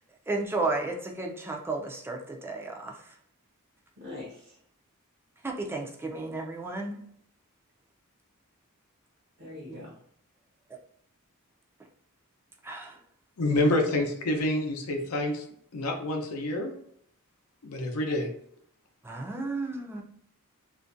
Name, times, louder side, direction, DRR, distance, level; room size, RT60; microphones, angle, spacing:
voice 1, 0.3-2.9 5.4-7.0 9.7-9.8 12.6-12.9 19.0-20.0, right 3 dB, 10° right, 1 dB, 0.4 m, -33 dB
voice 2, 4.0-4.6 9.4-10.0 13.7-13.8, left 2 dB, 50° right, -5 dB, 0.6 m, -43 dB
voice 3, 13.4-15.4 15.7-16.7 17.6-18.3, left 1 dB, 80° left, 3 dB, 0.6 m, -27 dB
2.5 x 2.1 x 2.5 m, 0.68 s
head